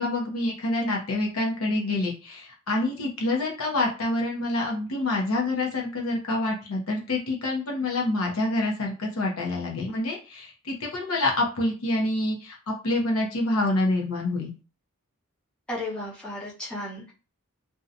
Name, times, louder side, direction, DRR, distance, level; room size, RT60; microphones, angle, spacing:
voice 1, 0.0-14.5, left 2 dB, 70° left, 0 dB, 0.7 m, -27 dB
voice 2, 15.7-17.1, left 1 dB, 5° left, -7 dB, 0.8 m, -34 dB
2.6 x 2.2 x 2.5 m, 0.33 s
head